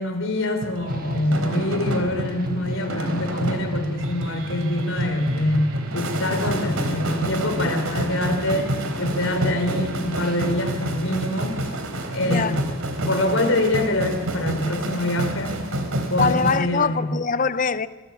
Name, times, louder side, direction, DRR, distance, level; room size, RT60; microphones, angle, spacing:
voice 1, 0.0-11.6 12.1-12.6 13.0-15.6 16.1-17.1, left 1 dB, 70° left, 4.4 m, -25 dB
sound 1, 0.6-16.6, right 1 dB, 80° right, 3.9 m, -28 dB
sound 2, 0.9-10.5, right 1 dB, 40° right, 1.7 m, -39 dB
voice 2, 12.2-12.6 16.2-17.9, left 5 dB, 35° left, 0.7 m, -23 dB
25.5 x 22.5 x 8.5 m
head